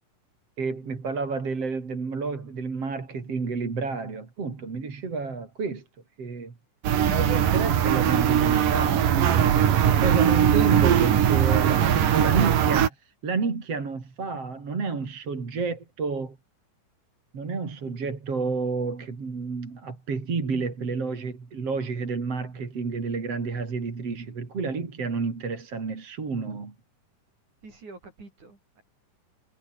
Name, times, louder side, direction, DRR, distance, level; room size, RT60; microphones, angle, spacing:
voice 1, 0.6-5.8 6.2-6.5 7.0-16.4 17.3-26.7, right 4 dB, 45° right, 5.0 m, -30 dB
sound 1, 6.8-12.9, right 9 dB, 80° right, 3.8 m, -20 dB
voice 2, 27.6-28.8, right 3 dB, 60° right, 9.3 m, -47 dB
omnidirectional pair, 3.8 m